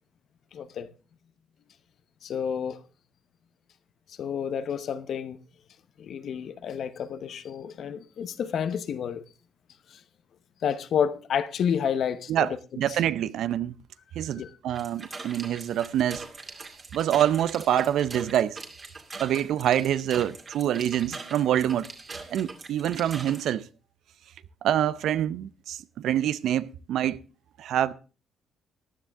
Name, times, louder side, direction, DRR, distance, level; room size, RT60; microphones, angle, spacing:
voice 1, 0.5-0.9 2.2-2.8 4.1-5.4 6.0-9.2 9.9-10.0 10.6-12.6 12.9-13.0 14.4-14.5, left 8 dB, 65° left, 0.9 m, -30 dB
voice 2, 12.8-13.8 14.2-16.2 16.9-18.6 19.2-21.9 22.3-23.6 24.6-27.2 27.6-27.9, right 11 dB, 75° right, 0.6 m, -26 dB
sound 1, 14.7-23.5, right 3 dB, 35° right, 2.4 m, -42 dB
15.0 x 10.0 x 3.5 m
cardioid pair, 90°, 0 cm